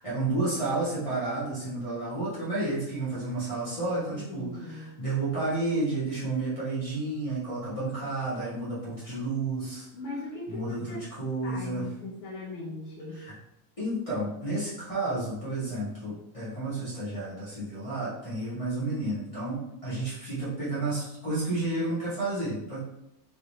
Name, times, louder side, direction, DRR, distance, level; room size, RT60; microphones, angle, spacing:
voice 1, 0.0-9.9 10.5-11.8 13.1-13.3 13.8-22.8, right 2 dB, 35° left, -12 dB, 0.5 m, -31 dB
voice 2, 4.1-4.9 9.9-11.1 11.4-13.2, left 2 dB, 65° left, -4 dB, 1.4 m, -39 dB
5.3 x 3.3 x 2.7 m, 0.84 s
omnidirectional pair, 3.4 m